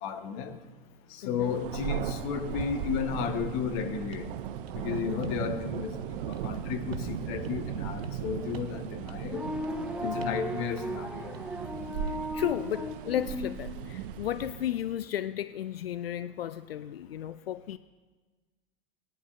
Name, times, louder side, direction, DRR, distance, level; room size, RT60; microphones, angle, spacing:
voice 1, 0.0-0.6 1.1-4.3 4.7-9.5 10.0-11.3, left 7 dB, 50° left, 7 dB, 1.4 m, -33 dB
voice 2, 1.2-1.6 5.0-5.4 10.0-10.4 12.0-17.8, left 11 dB, 80° left, 14 dB, 0.5 m, -34 dB
Thunder, 1.4-15.0, right 9 dB, 60° right, 0.8 m, -37 dB
sound 1, 4.1-4.3 4.7-5.5 5.7-6.1 6.3-6.5 6.9-7.2 7.4-7.6 8.0-8.3 8.5-8.8 9.1-9.3 9.6-9.9 10.2-10.5 10.8-11.0 11.3-12.2, right 4 dB, 80° right, 1.4 m, -47 dB
sound 2, 9.2-13.6, equal, 5° right, 1.6 m, -36 dB
21.5 x 9.9 x 2.6 m, 1.3 s
figure-of-eight pair, 85°, 29 cm